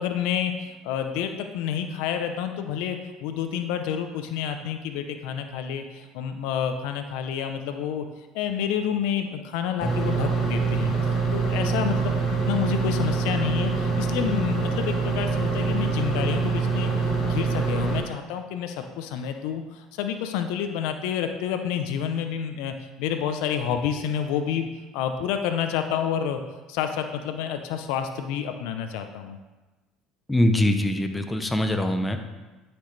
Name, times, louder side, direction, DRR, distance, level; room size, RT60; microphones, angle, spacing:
voice 1, 0.0-8.0 8.3-16.9 17.2-24.7 24.9-26.4 26.7-29.4, left 8 dB, 75° left, 7 dB, 0.7 m, -29 dB
sound 1, 9.8-18.0, right 4 dB, 45° left, 2.8 m, -25 dB
voice 2, 30.3-32.2, left 1 dB, 10° left, 6 dB, 0.9 m, -23 dB
11.5 x 6.0 x 3.3 m, 1.2 s
supercardioid pair, 95°, 0 cm